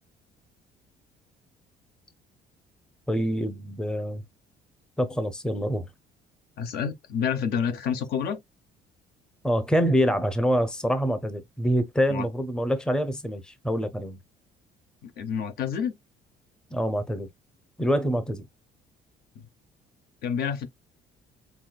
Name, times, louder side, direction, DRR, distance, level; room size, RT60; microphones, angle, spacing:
voice 1, 3.1-4.2 5.0-5.9 9.4-14.2 16.7-17.3 17.8-18.5, equal, 5° left, 0.6 m, -26 dB
voice 2, 6.6-8.4 12.1-12.3 15.0-16.0 19.4-19.5 20.2-20.7, left 7 dB, 65° left, 0.8 m, -28 dB
5.9 x 2.6 x 2.2 m
cardioid pair, 110°, 17 cm